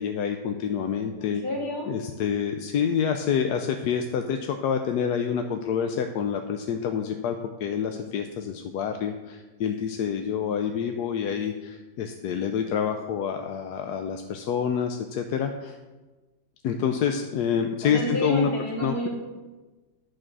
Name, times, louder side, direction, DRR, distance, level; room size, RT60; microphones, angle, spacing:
voice 1, 0.0-1.4 1.9-15.8 16.6-18.5 18.8-19.1, left 7 dB, 75° left, 6 dB, 1.1 m, -27 dB
voice 2, 1.1-2.0 17.8-19.1, left 1 dB, 60° left, -3 dB, 2.7 m, -30 dB
11.0 x 5.0 x 6.1 m, 1.2 s
omnidirectional pair, 1.9 m